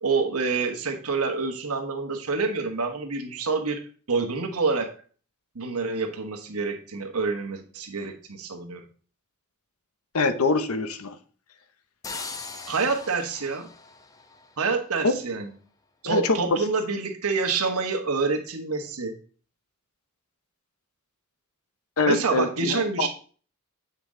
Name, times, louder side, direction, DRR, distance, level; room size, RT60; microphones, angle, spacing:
voice 1, 0.0-3.8 4.1-4.9 5.5-8.8 12.7-13.7 14.6-15.5 16.0-19.2 22.1-23.1, right 4 dB, 80° right, 5 dB, 1.1 m, -27 dB
voice 2, 10.1-11.2 15.0-15.2 16.0-16.6 22.0-23.1, left 3 dB, 75° left, 11 dB, 0.8 m, -24 dB
sound 1, 12.0-14.9, left 4 dB, 15° left, 0.5 m, -40 dB
7.6 x 5.9 x 3.7 m, 0.42 s
head